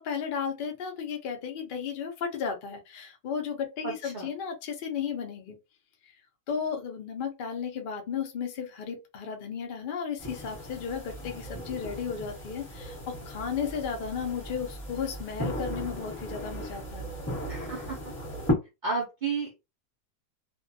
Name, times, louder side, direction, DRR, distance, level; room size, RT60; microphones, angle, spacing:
voice 1, 0.0-5.6 6.5-17.1, left 6 dB, 75° left, 0.4 m, -34 dB
voice 2, 3.8-4.3 17.5-18.1 18.8-19.6, right 4 dB, 80° right, 0.4 m, -32 dB
sound 1, 10.2-18.5, equal, 10° left, 1.0 m, -36 dB
2.5 x 2.2 x 2.5 m
omnidirectional pair, 1.6 m